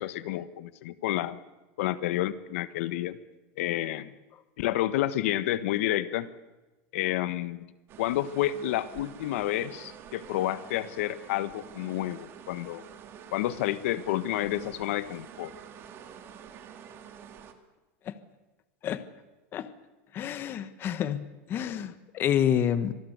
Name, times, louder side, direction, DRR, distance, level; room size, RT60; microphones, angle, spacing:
voice 1, 0.0-1.4 1.8-3.2 3.6-4.1 4.6-6.3 6.9-7.7 8.0-12.8 13.3-15.5, left 14 dB, 75° left, 14 dB, 1.3 m, -30 dB
sound 1, 7.9-17.5, right 8 dB, 35° right, 2.5 m, -48 dB
voice 2, 20.1-22.9, left 9 dB, 30° left, 12 dB, 1.4 m, -28 dB
25.5 x 19.0 x 8.1 m, 1.1 s
supercardioid pair, 155°, 7 cm